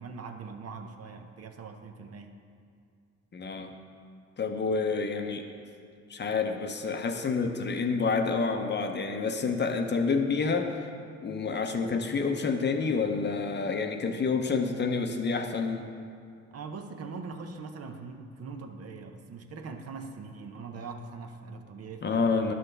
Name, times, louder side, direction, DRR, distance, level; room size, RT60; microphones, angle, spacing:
voice 1, 0.0-2.3 16.5-22.5, right 4 dB, 55° right, 5 dB, 0.7 m, -42 dB
voice 2, 3.3-3.8 4.4-5.5 6.1-10.9 11.2-15.8 22.0-22.5, left 4 dB, 35° left, 5 dB, 0.7 m, -28 dB
11.0 x 6.2 x 3.3 m, 2.3 s
cardioid pair, 90°, 30 cm